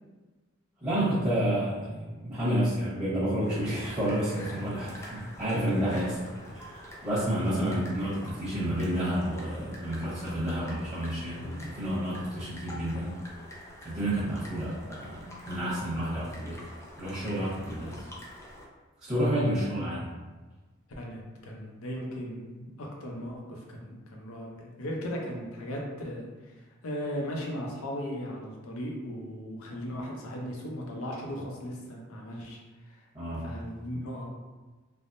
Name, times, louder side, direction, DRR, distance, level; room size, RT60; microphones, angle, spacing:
voice 1, 0.8-6.2 6.5-13.1 13.8-16.6 17.0-18.0 19.0-20.0 33.1-33.5, right 1 dB, 15° right, -12 dB, 1.0 m, -30 dB
sound 1, 3.4-18.7, equal, 15° left, 0.4 m, -47 dB
voice 2, 4.0-4.6 5.9-6.1 6.4-6.5 11.4-11.6 19.5-19.7 21.0-26.3 26.8-32.6 32.8-33.0 33.4-34.2, equal, 75° left, -1 dB, 0.6 m, -37 dB
3.4 x 2.0 x 2.5 m, 1.3 s
head